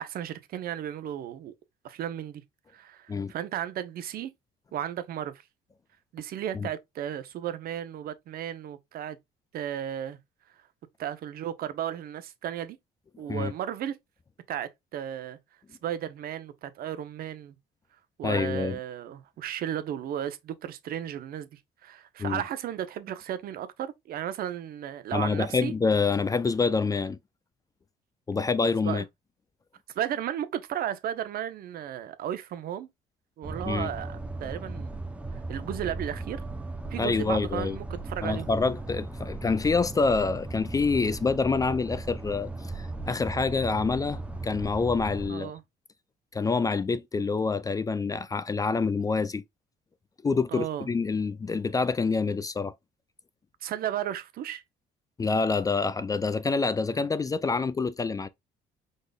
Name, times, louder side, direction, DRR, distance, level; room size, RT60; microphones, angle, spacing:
voice 1, 0.0-1.5 1.8-2.4 2.7-4.3 4.7-5.4 6.1-9.2 9.5-10.2 11.0-12.8 13.2-14.0 14.5-15.4 15.8-17.6 18.2-25.7 28.8-29.1 29.9-32.9 33.4-34.9 35.5-36.4 36.9-38.5 45.3-45.6 50.5-50.9 53.6-54.6, right 10 dB, 65° right, 0.8 m, -34 dB
voice 2, 18.2-18.8 22.2-22.4 25.1-27.2 28.3-29.0 33.7-33.9 37.0-37.8 38.2-42.5 42.7-45.5 46.3-49.4 50.2-52.7 55.2-58.3, left 4 dB, 20° left, 0.4 m, -27 dB
sound 1, 33.4-45.3, right 2 dB, 10° right, 0.7 m, -37 dB
5.1 x 4.1 x 2.3 m
cardioid pair, 110°, 17 cm